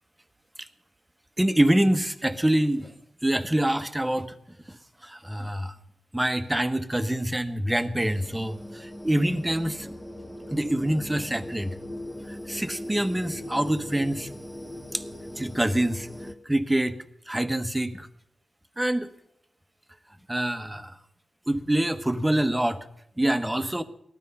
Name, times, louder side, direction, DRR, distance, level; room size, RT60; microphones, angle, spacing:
voice 1, 1.4-2.9 3.2-5.7 6.1-9.9 10.5-11.8 12.3-14.3 14.9-15.0 15.4-16.1 16.4-18.1 18.8-19.1 20.3-21.0 21.5-22.9 23.2-23.8, right 1 dB, 10° right, 9 dB, 1.3 m, -26 dB
sound 1, 8.0-16.3, left 1 dB, 5° left, 1.2 m, -40 dB
18.5 x 12.5 x 5.6 m, 0.75 s
cardioid pair, 65°, 0 cm